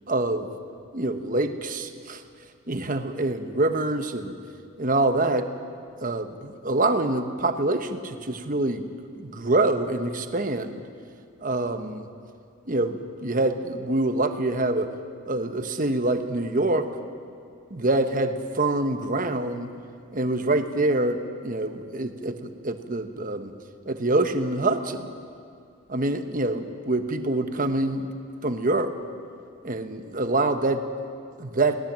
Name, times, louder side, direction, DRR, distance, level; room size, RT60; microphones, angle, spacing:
voice 1, 0.1-0.5 0.9-2.2 2.7-4.3 4.8-5.5 6.0-8.9 9.2-10.8 11.4-12.1 12.7-14.9 15.3-16.9 17.7-19.7 20.1-23.5 23.8-25.1 25.9-28.1 28.4-28.9 29.6-30.8 31.4-31.8, right 2 dB, 40° right, 8 dB, 1.1 m, -25 dB
22.5 x 18.0 x 7.5 m, 2.4 s
head